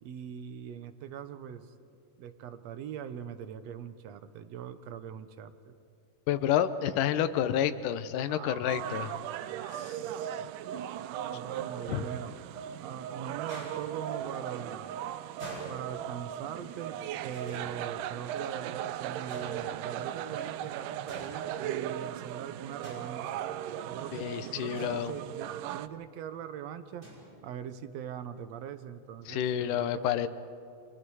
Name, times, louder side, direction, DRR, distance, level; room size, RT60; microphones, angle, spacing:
voice 1, 0.0-1.7 2.2-5.7 8.3-10.5 11.0-12.3 12.8-15.0 15.7-23.4 23.9-27.1 27.4-29.9, right 8 dB, 65° right, 10 dB, 1.9 m, -42 dB
voice 2, 6.3-9.1 9.7-9.9 11.9-12.0 24.1-25.1 29.3-30.3, left 10 dB, 80° left, 11 dB, 2.4 m, -29 dB
sound 1, 8.7-25.9, right 11 dB, 80° right, 2.2 m, -38 dB
sound 2, 12.3-12.8 13.5-14.1 15.4-16.4 17.3-18.4 19.3-20.1 21.1-21.9 22.8-23.5 24.8-25.6 27.0-27.4, right 1 dB, 35° right, 6.5 m, -48 dB
29.5 x 25.0 x 4.8 m, 2.6 s
omnidirectional pair, 3.7 m